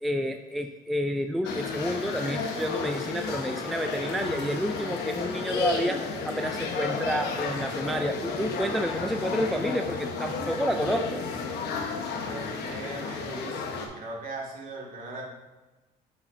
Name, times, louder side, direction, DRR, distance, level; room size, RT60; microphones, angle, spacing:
voice 1, 0.0-11.2, equal, ahead, 6 dB, 0.3 m, -30 dB
sound 1, 1.4-13.9, left 4 dB, 80° left, 1.0 m, -32 dB
voice 2, 12.2-13.7 14.0-15.2, right 2 dB, 55° right, -2 dB, 2.0 m, -39 dB
8.1 x 5.8 x 2.6 m, 1.1 s
cardioid pair, 110°, 17 cm